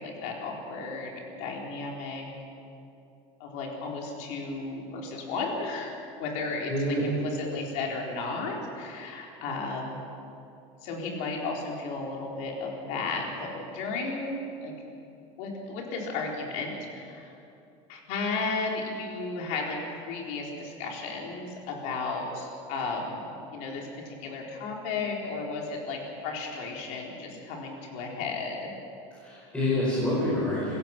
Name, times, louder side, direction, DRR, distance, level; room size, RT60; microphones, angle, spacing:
voice 1, 0.0-2.2 3.4-10.0 10.8-14.7 15.4-17.3 17.9-28.7, left 3 dB, 50° left, -1 dB, 4.0 m, -34 dB
voice 2, 6.7-7.0 29.2-30.8, left 1 dB, 5° left, -9 dB, 5.0 m, -27 dB
26.5 x 16.5 x 6.0 m, 2.7 s
cardioid pair, 175°, 16 cm